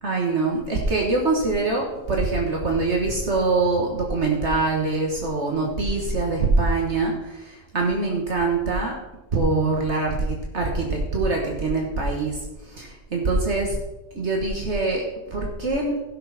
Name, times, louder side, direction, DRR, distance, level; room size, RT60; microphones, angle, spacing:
voice 1, 0.0-9.0 9.3-13.8 14.1-16.0, right 3 dB, 55° right, 0 dB, 1.8 m, -24 dB
15.5 x 6.4 x 4.2 m, 1.0 s
omnidirectional pair, 1.4 m